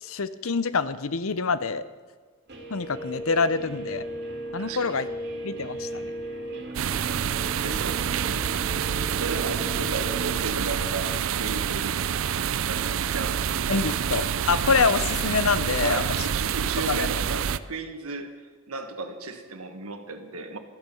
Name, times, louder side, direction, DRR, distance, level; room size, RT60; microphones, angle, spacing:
voice 1, 0.0-1.8 2.7-4.0 4.5-5.1 5.4-6.1 13.7-16.2 16.9-17.1, left 4 dB, 70° left, 14 dB, 0.7 m, -26 dB
Guitar, 2.5-10.4, right 1 dB, 50° right, 2.5 m, -37 dB
voice 2, 4.6-4.9 6.6-6.9 7.6-8.5 9.2-12.0 12.6-13.5 13.8-13.9 15.8-20.6, right 3 dB, 80° right, 6 dB, 1.7 m, -35 dB
sound 1, 6.7-17.6, right 8 dB, 65° right, 0.4 m, -27 dB
14.0 x 12.5 x 7.0 m, 1.4 s
head